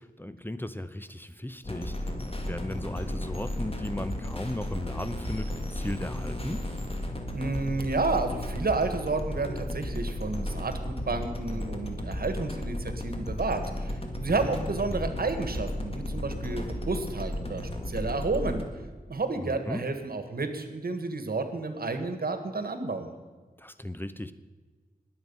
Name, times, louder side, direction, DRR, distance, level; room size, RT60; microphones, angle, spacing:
voice 1, 0.0-2.1 2.4-6.6 14.4-15.2 19.4-19.8 23.6-24.3, left 1 dB, 15° left, 12 dB, 0.7 m, -36 dB
sound 1, 1.6-18.6, left 1 dB, 40° left, 2.0 m, -34 dB
voice 2, 7.3-18.6 19.1-23.1, right 3 dB, 75° right, 8 dB, 1.4 m, -31 dB
20.5 x 7.9 x 5.4 m, 1.4 s
wide cardioid pair, 55°, 16 cm